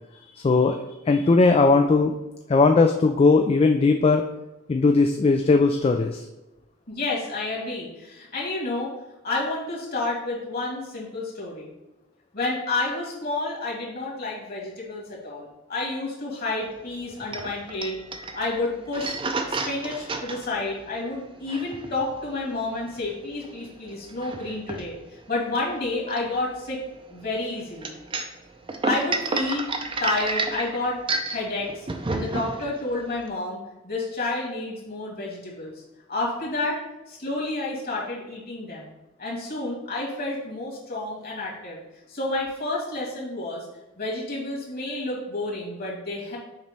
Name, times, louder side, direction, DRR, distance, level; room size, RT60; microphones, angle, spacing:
voice 1, 0.4-0.8 1.1-2.1 2.5-4.2 4.7-6.2, left 3 dB, 30° left, 5 dB, 0.3 m, -18 dB
voice 2, 6.9-8.9 9.2-11.7 12.3-18.0 18.3-19.1 19.5-26.8 27.1-28.0 28.8-29.7 30.0-31.0 31.3-35.7 36.1-36.8 37.1-38.9 39.2-41.8 42.1-43.7 44.0-46.4, left 2 dB, 50° left, -3 dB, 2.4 m, -30 dB
sound 1, 16.6-33.3, right 3 dB, 25° right, 0.5 m, -32 dB
7.2 x 3.1 x 5.2 m, 1.0 s
head